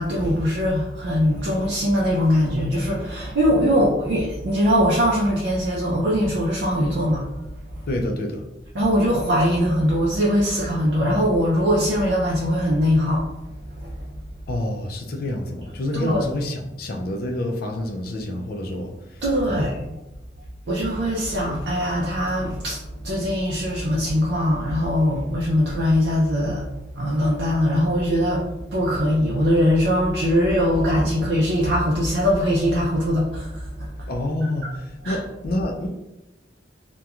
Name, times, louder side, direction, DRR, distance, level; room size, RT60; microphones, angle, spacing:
voice 1, 0.0-7.3 7.7-8.0 8.7-13.3 13.8-13.9 15.9-16.2 19.2-19.8 20.7-28.4 28.7-33.9 34.6-34.7 35.0-35.2, equal, 70° right, -4 dB, 0.4 m, -21 dB
voice 2, 7.9-8.5 14.5-19.2 19.5-19.8 34.1-35.9, left 1 dB, 55° left, 2 dB, 0.4 m, -28 dB
2.9 x 2.2 x 2.3 m, 0.94 s
head